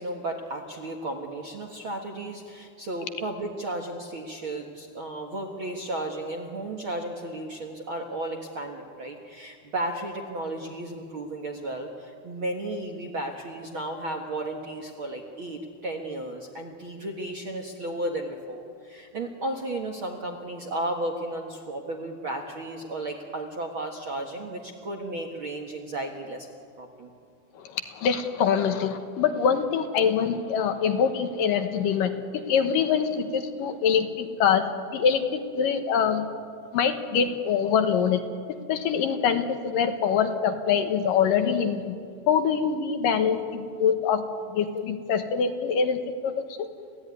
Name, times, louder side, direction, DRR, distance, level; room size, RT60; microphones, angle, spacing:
voice 1, 0.0-26.5 26.8-27.1, right 1 dB, 60° right, 3 dB, 1.3 m, -34 dB
voice 2, 27.7-34.7 34.9-36.3 36.7-38.2 38.7-42.0 42.3-44.2 44.5-46.7, left 7 dB, 65° left, 7 dB, 2.5 m, -24 dB
29.5 x 16.0 x 9.6 m, 2.3 s
omnidirectional pair, 4.7 m